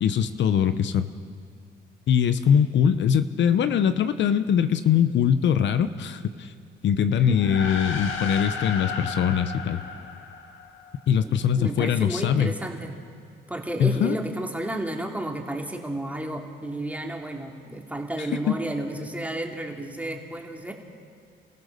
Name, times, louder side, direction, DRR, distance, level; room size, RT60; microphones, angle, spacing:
voice 1, 0.0-1.1 2.1-6.5 6.8-9.8 11.1-12.5 13.8-14.2 18.2-18.6, left 8 dB, 65° left, 11 dB, 0.8 m, -22 dB
voice 2, 7.0-7.4 11.2-13.0 13.5-20.7, right 1 dB, 5° right, 1 dB, 2.7 m, -32 dB
sound 1, 7.3-11.0, left 4 dB, 85° left, 1.8 m, -33 dB
29.0 x 15.0 x 6.7 m, 2.2 s
cardioid pair, 90°, 20 cm